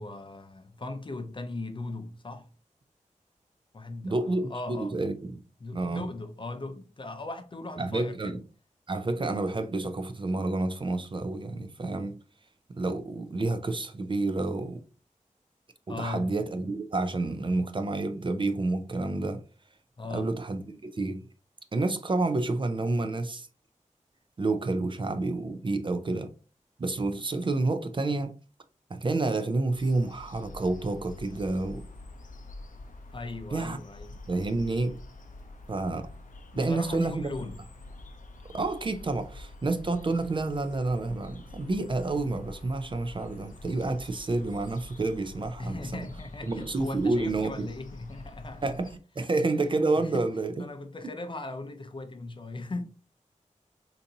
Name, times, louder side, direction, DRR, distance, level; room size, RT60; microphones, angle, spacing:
voice 1, 0.0-2.5 3.7-5.0 5.6-8.4 15.9-16.3 20.0-20.3 33.1-34.1 36.5-37.6 45.6-48.6 49.2-49.3 50.0-50.3 50.5-52.8, left 2 dB, 40° left, 0.5 m, -38 dB
voice 2, 4.0-5.4 5.7-6.0 7.8-8.4 8.9-12.2 12.7-14.8 15.9-19.4 20.1-21.2 21.7-23.5 24.4-26.3 26.8-28.3 28.9-31.8 33.5-33.8 34.3-35.0 35.7-36.1 36.6-37.3 38.5-46.0 46.5-47.7 48.6-50.5, right 2 dB, 40° right, 0.4 m, -29 dB
sound 1, 29.8-49.0, left 2 dB, 85° left, 0.5 m, -46 dB
3.9 x 2.6 x 2.7 m
wide cardioid pair, 95°, 13 cm